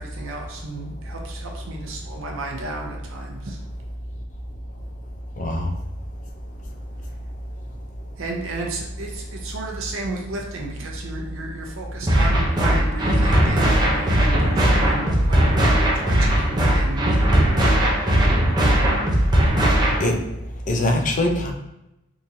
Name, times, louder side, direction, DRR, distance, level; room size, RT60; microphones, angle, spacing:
voice 1, 0.0-3.6 8.2-17.1, right 2 dB, 75° right, 0 dB, 0.6 m, -33 dB
voice 2, 5.4-5.7 20.0-20.1 20.7-21.5, left 1 dB, 40° left, 3 dB, 0.5 m, -22 dB
sound 1, 12.1-20.1, right 1 dB, 20° right, 0.6 m, -18 dB
3.7 x 2.9 x 2.6 m, 0.90 s
head